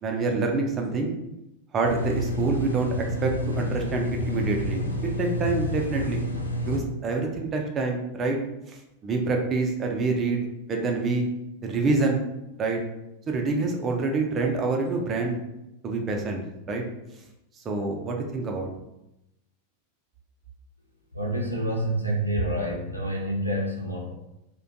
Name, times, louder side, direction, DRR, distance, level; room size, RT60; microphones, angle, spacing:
voice 1, 0.0-1.1 1.7-4.8 5.2-6.2 6.6-8.4 8.7-10.4 10.7-11.3 11.6-12.2 12.6-12.8 13.3-15.4 15.8-16.8 17.6-18.7, right 3 dB, 25° right, 2 dB, 0.4 m, -26 dB
sound 1, 1.8-6.8, equal, 85° left, 0.3 m, -29 dB
voice 2, 21.1-24.1, right 1 dB, 90° right, -1 dB, 0.3 m, -28 dB
2.5 x 2.2 x 2.5 m, 0.91 s
figure-of-eight pair, 90°, 0 cm